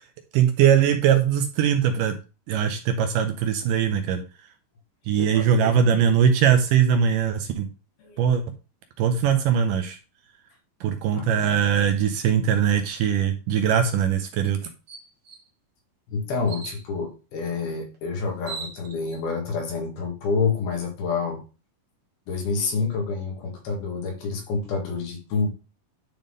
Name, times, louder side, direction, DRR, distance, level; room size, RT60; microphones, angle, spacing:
voice 1, 0.3-2.1 2.5-4.2 5.1-7.7 8.2-8.4 9.0-10.0 10.8-14.6, right 8 dB, 80° right, 2.0 m, -21 dB
voice 2, 5.1-5.7 8.0-8.2 11.1-11.9 16.1-21.4 22.3-25.5, left 4 dB, 85° left, 3.6 m, -28 dB
sound 1, 13.8-14.0 14.5-14.6 14.9-15.5 16.5-16.8 17.9-18.0 18.3-19.2, right 4 dB, 50° right, 2.1 m, -39 dB
10.5 x 3.6 x 3.9 m
omnidirectional pair, 4.3 m